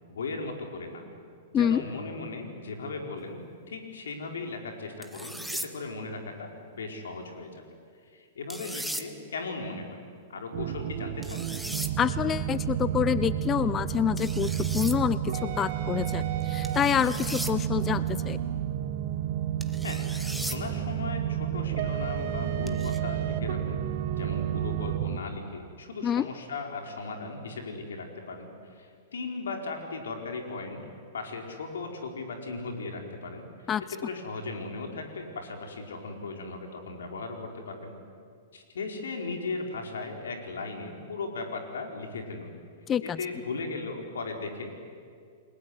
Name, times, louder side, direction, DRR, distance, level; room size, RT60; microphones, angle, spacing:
voice 1, 0.1-1.0 1.5-7.6 8.0-10.0 10.3-11.5 19.8-20.0 20.4-23.8 24.1-30.8 31.1-33.4 33.9-37.9 38.5-42.5 43.0-44.8, left 3 dB, 80° left, 3 dB, 4.8 m, -37 dB
sound 1, 5.0-5.7 8.5-9.1 11.2-11.9 14.2-15.0 16.6-17.5 19.6-20.6 22.7-23.0, right 1 dB, ahead, 1.7 m, -37 dB
sound 2, 10.5-25.2, right 11 dB, 55° right, 1.7 m, -30 dB
voice 2, 12.0-18.4 26.0-26.3 33.7-33.8 42.9-43.2, left 9 dB, 25° left, 16 dB, 0.6 m, -27 dB
29.5 x 21.0 x 9.7 m, 2.3 s
hypercardioid pair, 110°, 0 cm